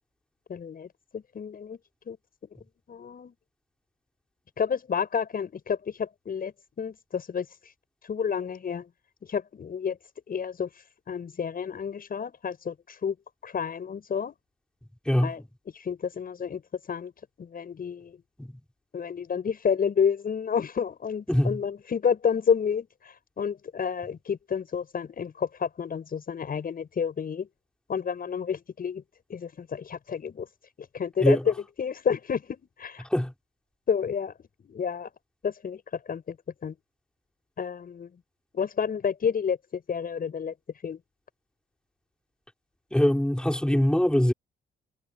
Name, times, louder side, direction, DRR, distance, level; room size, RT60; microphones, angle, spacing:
voice 1, 0.5-1.8 2.1-2.2 2.9-3.3 4.6-7.5 8.0-8.9 9.3-10.0 10.3-10.7 11.1-13.2 13.4-14.4 15.2-15.4 15.7-16.6 16.9-17.1 17.4-18.2 18.9-27.5 27.9-29.0 29.3-30.5 30.9-33.0 33.9-34.3 34.6-35.1 35.4-36.4 36.6-36.8 37.6-38.1 38.5-40.5 40.8-41.0, left 7 dB, 45° left, 7.1 m, -30 dB
voice 2, 42.9-44.3, left 1 dB, 5° left, 5.9 m, -22 dB
cardioid pair, 90°, 20 cm